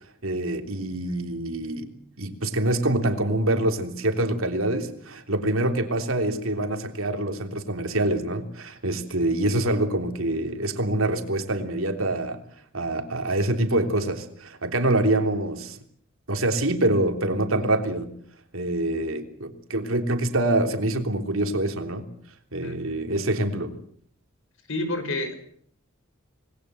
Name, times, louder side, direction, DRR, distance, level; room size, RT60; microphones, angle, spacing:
voice 1, 0.2-1.9 2.2-12.4 12.7-15.8 16.3-18.1 18.5-22.1 22.5-23.7, right 1 dB, 70° right, 5 dB, 3.4 m, -25 dB
voice 2, 24.7-25.4, left 2 dB, 65° left, 9 dB, 5.3 m, -28 dB
27.0 x 20.5 x 7.9 m, 0.63 s
head